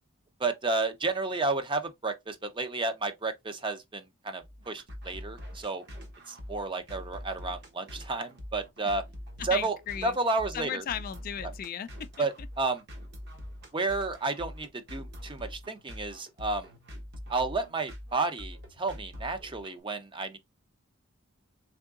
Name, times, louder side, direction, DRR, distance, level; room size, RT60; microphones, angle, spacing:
voice 1, 0.4-5.8 6.3-9.0 9.4-9.8 10.0-10.8 12.2-12.8 13.7-16.7 17.3-20.4, right 3 dB, 25° right, 0.6 m, -31 dB
sound 1, 4.4-19.8, equal, 55° right, 1.2 m, -44 dB
voice 2, 9.4-10.2 10.5-11.9 12.2-12.3, left 9 dB, 45° left, 0.3 m, -35 dB
3.7 x 3.5 x 2.4 m
head